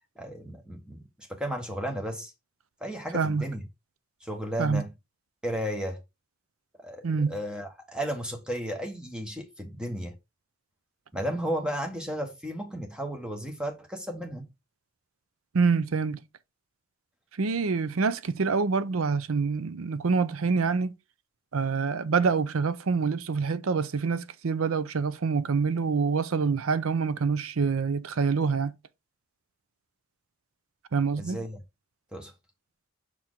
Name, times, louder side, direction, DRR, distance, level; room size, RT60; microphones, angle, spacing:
voice 1, 0.2-2.3 2.8-3.6 4.2-4.9 5.4-6.0 6.8-10.1 11.1-14.4 31.2-31.6 32.1-32.3, equal, 5° right, 1.1 m, -34 dB
voice 2, 3.1-3.5 4.6-4.8 7.0-7.3 15.5-16.2 17.4-20.9 21.5-28.7 30.9-31.4, right 5 dB, 75° right, 0.6 m, -26 dB
6.1 x 4.4 x 3.8 m
head